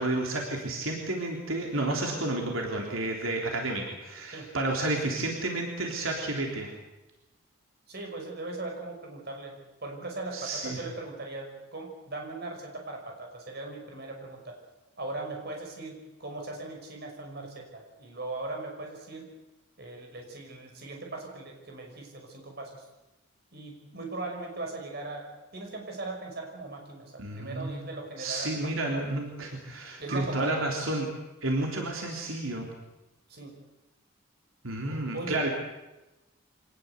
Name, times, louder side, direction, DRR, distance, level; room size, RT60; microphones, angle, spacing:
voice 1, 0.0-6.7 10.3-10.8 27.2-27.8 28.2-31.1 31.4-32.7 34.6-35.5, right 2 dB, 80° right, 1 dB, 3.6 m, -31 dB
voice 2, 7.9-9.5 9.8-14.6 15.0-19.3 19.8-22.8 23.5-29.0 30.0-30.7 33.3-33.6 34.9-35.4, right 2 dB, 50° right, 2 dB, 5.8 m, -39 dB
25.0 x 19.0 x 8.2 m, 1.0 s
head